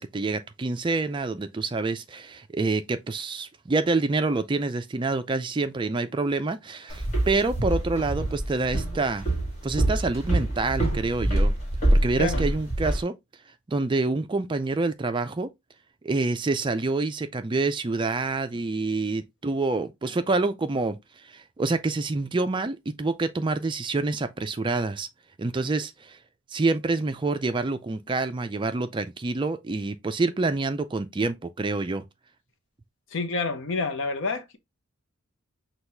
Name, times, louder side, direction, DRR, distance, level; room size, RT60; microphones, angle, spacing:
voice 1, 0.0-9.3 9.6-11.6 11.9-13.1 13.7-15.5 16.0-25.1 25.4-26.2 26.5-32.0, right 3 dB, 20° right, 0.3 m, -27 dB
Walk footsteps, 6.9-13.0, right 1 dB, 30° left, 1.6 m, -25 dB
voice 2, 12.2-12.5 33.1-34.6, left 3 dB, 60° left, 0.7 m, -28 dB
6.0 x 2.3 x 3.3 m
head